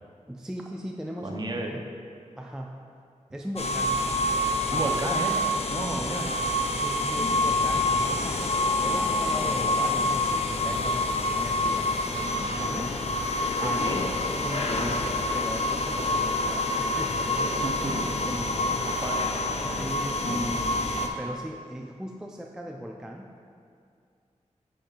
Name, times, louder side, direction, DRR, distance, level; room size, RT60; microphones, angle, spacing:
voice 1, 0.3-1.4 1.7-1.8 2.4-2.7 3.3-4.0 4.7-4.9 6.7-12.9 13.6-13.8 14.4-15.0 15.3-17.8 18.3-18.8 19.6-23.4, equal, 5° right, 1 dB, 0.3 m, -38 dB
voice 2, 1.2-1.7 4.7-6.3 13.6-14.0 17.6-18.1 18.8-19.3, right 2 dB, 35° right, 1 dB, 0.7 m, -32 dB
sound 1, 3.6-21.1, left 2 dB, 55° left, 0.5 m, -27 dB
9.9 x 4.4 x 2.4 m, 2.3 s
wide cardioid pair, 95°, 13 cm